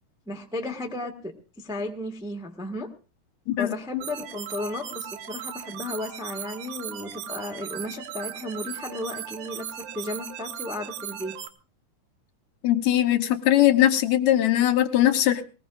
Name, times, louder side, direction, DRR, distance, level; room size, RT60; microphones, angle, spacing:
voice 1, 0.3-2.9 3.6-11.4, left 2 dB, 5° right, 2 dB, 0.6 m, -34 dB
sound 1, 4.0-11.5, right 10 dB, 90° right, 2.6 m, -37 dB
voice 2, 12.6-15.4, left 12 dB, 70° left, 9 dB, 2.2 m, -20 dB
20.0 x 19.5 x 2.4 m, 0.35 s
omnidirectional pair, 3.5 m